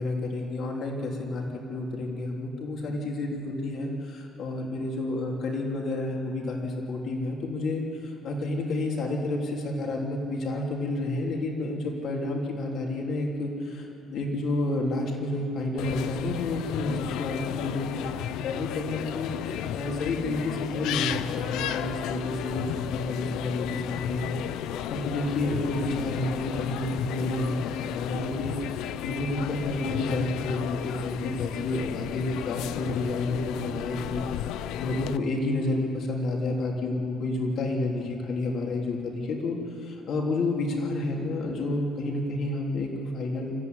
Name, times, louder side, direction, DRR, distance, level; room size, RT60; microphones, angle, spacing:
voice 1, 0.0-18.1 18.4-43.5, left 2 dB, 50° left, 0 dB, 3.4 m, -30 dB
sound 1, 15.8-35.2, left 11 dB, 75° left, 0.7 m, -33 dB
27.5 x 14.5 x 9.6 m, 2.9 s
cardioid pair, 170°, 0 cm